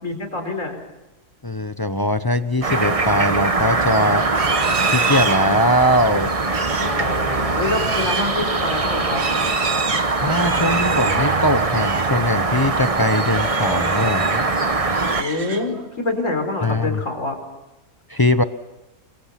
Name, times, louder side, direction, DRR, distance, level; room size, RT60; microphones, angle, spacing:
voice 1, 0.0-0.7 6.7-9.2 15.2-17.4, left 2 dB, 55° left, 5 dB, 5.0 m, -26 dB
voice 2, 1.4-4.3 4.8-6.3 10.1-14.4 16.6-17.0 18.1-18.4, left 1 dB, 20° left, 10 dB, 0.6 m, -21 dB
sound 1, 2.6-15.2, right 3 dB, 25° right, 1.1 m, -22 dB
Livestock farm animals working animals, 4.2-12.2 12.5-12.8 13.2-14.5 14.8-15.9, right 5 dB, 45° right, 1.5 m, -29 dB
29.0 x 23.5 x 5.9 m, 1.0 s
omnidirectional pair, 1.6 m